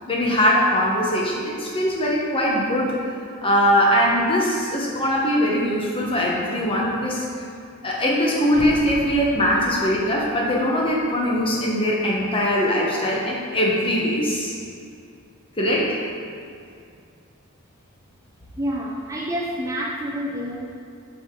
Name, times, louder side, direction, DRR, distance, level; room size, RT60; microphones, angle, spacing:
voice 1, 0.1-3.1 3.4-7.3 7.8-14.5 15.6-16.0, equal, 25° left, -3 dB, 1.0 m, -21 dB
sound 1, 8.5-11.4 11.8-11.9, left 2 dB, 70° left, 0.6 m, -39 dB
voice 2, 18.6-20.7, equal, 15° right, -4 dB, 0.5 m, -28 dB
7.5 x 5.0 x 3.8 m, 2.4 s
head